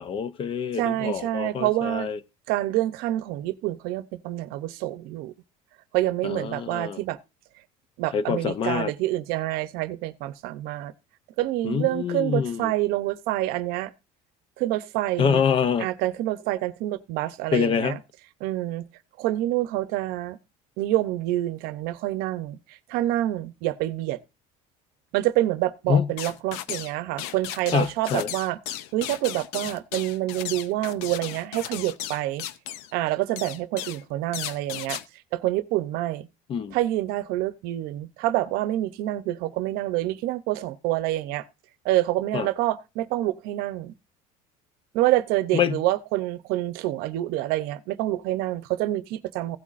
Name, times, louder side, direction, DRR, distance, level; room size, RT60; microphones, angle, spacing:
voice 1, 0.0-2.2 6.2-7.0 8.1-8.9 11.6-12.7 15.2-15.9 17.5-18.0 25.9-26.1 27.7-28.3 36.5-36.8 42.3-42.5 45.5-45.8, left 7 dB, 35° left, 0.6 m, -25 dB
voice 2, 0.7-2.1 2.5-5.3 5.9-7.2 8.0-10.9 11.4-13.9 14.6-15.4 15.8-18.0 18.4-18.8 19.2-20.4 20.8-24.2 25.1-28.6 28.9-32.4 32.9-35.0 35.3-36.3 36.7-41.4 41.8-43.9 44.9-49.6, right 15 dB, 70° right, 0.7 m, -27 dB
sound 1, 26.2-26.9 27.2-32.9 33.4-34.0 34.3-35.0, left 12 dB, 85° left, 0.6 m, -35 dB
15.5 x 8.3 x 2.5 m
cardioid pair, 145°, 16 cm